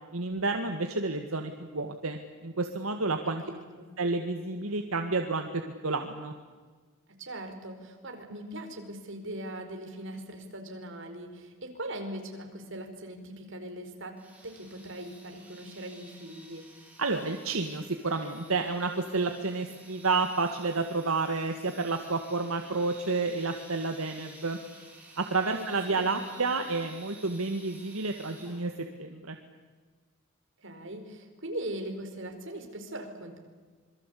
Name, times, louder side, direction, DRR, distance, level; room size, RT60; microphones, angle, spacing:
voice 1, 0.1-3.4 4.0-6.3 17.0-24.6 25.2-28.7 29.0-29.4, right 3 dB, 80° right, 5 dB, 1.9 m, -30 dB
voice 2, 3.4-3.9 7.2-14.1 14.4-16.7 25.5-26.4 30.6-33.4, right 1 dB, 60° right, 5 dB, 4.8 m, -40 dB
sound 1, 14.2-28.9, right 2 dB, 5° right, 6.7 m, -53 dB
27.0 x 23.0 x 8.5 m, 1.4 s
head